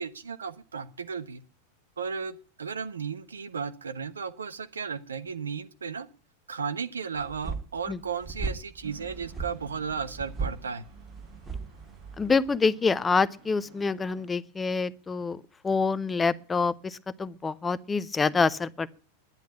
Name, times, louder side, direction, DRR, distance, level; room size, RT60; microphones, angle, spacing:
voice 1, 0.0-1.4 2.0-6.1 6.5-10.8, right 6 dB, 70° right, 1.1 m, -35 dB
sound 1, 7.2-12.6, right 4 dB, 10° right, 2.0 m, -37 dB
sound 2, 8.8-14.3, right 6 dB, 55° right, 6.6 m, -53 dB
voice 2, 12.2-18.9, left 4 dB, 15° left, 0.6 m, -26 dB
10.5 x 10.5 x 8.7 m
figure-of-eight pair, 90°, 0 cm